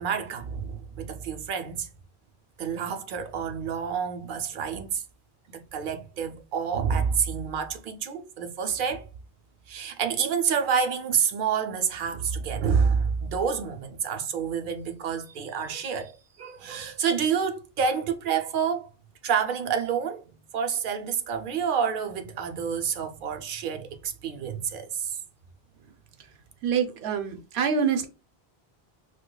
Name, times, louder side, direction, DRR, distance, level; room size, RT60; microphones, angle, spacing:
voice 1, 0.0-1.9 2.6-5.0 5.5-9.1 9.7-18.9 19.2-25.2, right 6 dB, 60° right, 0.6 m, -28 dB
voice 2, 26.6-28.1, right 6 dB, 85° right, 0.9 m, -26 dB
4.5 x 2.2 x 2.2 m
omnidirectional pair, 1.1 m